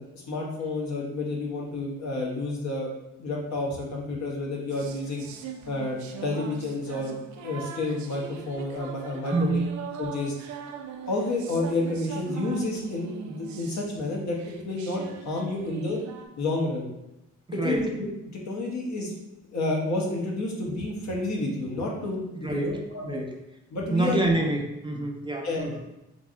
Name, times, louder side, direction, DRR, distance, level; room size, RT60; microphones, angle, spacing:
voice 1, 0.0-2.9 3.2-5.2 5.7-7.2 7.4-9.6 10.0-10.3 11.1-16.0 16.4-16.9 17.5-23.2 23.7-24.2 25.4-25.6, left 2 dB, 65° left, -2 dB, 1.1 m, -30 dB
sound 1, 4.7-16.3, right 7 dB, 70° right, 0.5 m, -41 dB
voice 2, 9.3-9.8 17.6-17.9 22.4-22.8 23.1-23.3 23.9-25.8, right 2 dB, 15° right, 1 dB, 0.5 m, -27 dB
3.3 x 2.6 x 4.3 m, 0.92 s
cardioid pair, 90°, 30 cm